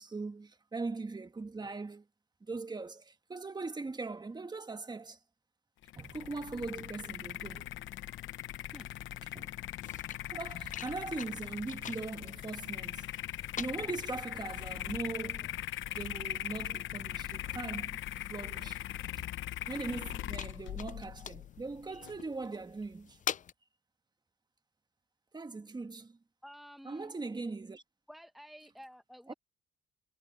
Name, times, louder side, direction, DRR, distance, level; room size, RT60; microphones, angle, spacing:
voice 1, 0.0-2.0 2.4-5.2 6.0-7.7 9.3-9.5 10.3-13.1 13.6-15.5 15.9-18.0 18.3-18.8 19.7-23.2 25.3-26.2 26.8-27.8 29.3-29.4, right 3 dB, 20° right, 1.4 m, -40 dB
sound 1, 5.8-22.2, left 13 dB, 75° left, 0.9 m, -40 dB
sound 2, 6.0-23.5, left 8 dB, 40° left, 0.5 m, -48 dB
sound 3, 6.0-20.2, right 5 dB, 35° right, 5.8 m, -72 dB
voice 2, 26.4-27.1 28.1-29.3, equal, ahead, 1.1 m, -51 dB
cardioid pair, 90°, 20 cm